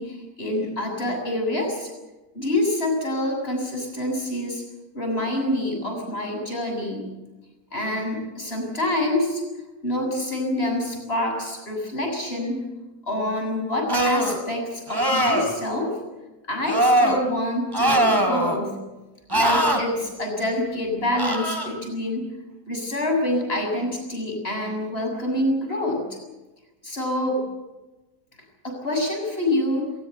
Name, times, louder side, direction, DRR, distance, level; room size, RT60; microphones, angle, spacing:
voice 1, 0.0-1.9 2.3-4.6 4.9-7.1 7.7-9.4 9.8-12.6 13.1-16.0 16.5-18.8 19.3-22.3 22.7-26.0 26.8-27.4 28.6-29.9, left 1 dB, 40° left, 2 dB, 7.3 m, -26 dB
sound 1, 13.9-14.4 14.9-15.5 16.7-17.2 17.7-18.6 19.3-19.8 21.2-21.7, right 1 dB, 15° right, 3.0 m, -21 dB
21.5 x 20.0 x 8.1 m, 1.1 s
omnidirectional pair, 1.5 m